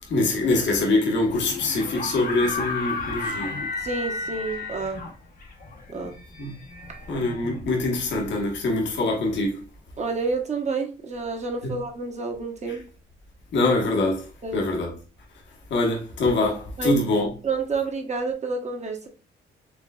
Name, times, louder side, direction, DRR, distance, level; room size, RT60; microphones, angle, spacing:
voice 1, 0.0-3.6 6.4-6.5 7.1-9.6 11.6-11.7 12.7-12.8 13.5-14.9 15.7-17.3, left 2 dB, 65° left, 1.2 m, -24 dB
sound 1, 1.3-8.1, left 3 dB, 45° left, 0.9 m, -33 dB
voice 2, 3.8-5.0 5.9-6.2 10.0-12.8 14.4-14.6 16.8-17.0 17.4-19.1, right 3 dB, 35° right, 1.1 m, -29 dB
4.7 x 3.2 x 2.3 m
cardioid pair, 90°, 20 cm